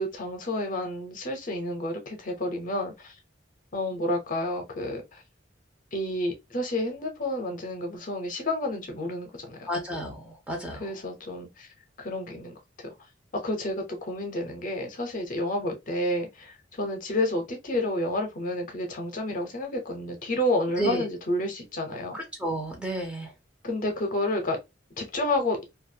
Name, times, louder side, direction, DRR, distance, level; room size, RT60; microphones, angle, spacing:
voice 1, 0.0-3.1 3.7-5.2 5.9-9.7 10.8-11.7 12.0-12.9 13.4-22.2 23.6-24.6 25.0-25.6, left 1 dB, 45° left, 0.7 m, -30 dB
voice 2, 9.7-10.9 20.8-21.0 22.1-23.3, right 1 dB, 5° right, 0.7 m, -31 dB
2.5 x 2.3 x 2.6 m
head